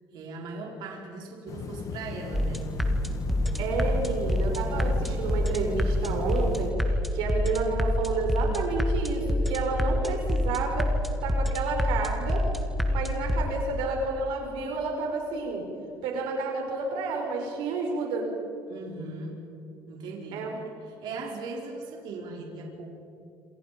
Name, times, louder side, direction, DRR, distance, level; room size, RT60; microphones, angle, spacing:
voice 1, 0.1-2.7 18.7-19.4 19.9-22.9, right 3 dB, 65° right, -1 dB, 5.1 m, -39 dB
sound 1, 1.5-6.7, left 5 dB, 40° left, 1.8 m, -38 dB
sound 2, 2.3-13.5, left 1 dB, ahead, 1.8 m, -27 dB
voice 2, 3.6-10.9 11.2-12.4 12.9-15.6 16.0-18.3 20.3-20.6, right 3 dB, 85° right, 1 dB, 5.0 m, -30 dB
27.5 x 27.5 x 5.3 m, 2.7 s
cardioid pair, 145°, 8 cm